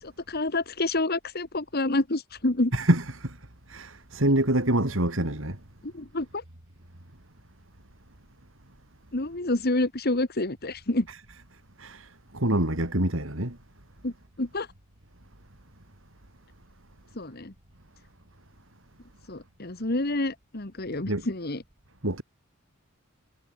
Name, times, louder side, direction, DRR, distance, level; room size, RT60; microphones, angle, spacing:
voice 1, 0.0-2.7 5.8-6.4 9.1-11.1 14.0-14.7 17.2-17.5 19.3-21.6, left 2 dB, 50° left, 1.8 m, -28 dB
voice 2, 2.7-3.4 3.7-5.6 11.8-13.6 21.1-21.2 22.0-22.2, right 1 dB, 70° right, 3.7 m, -26 dB
head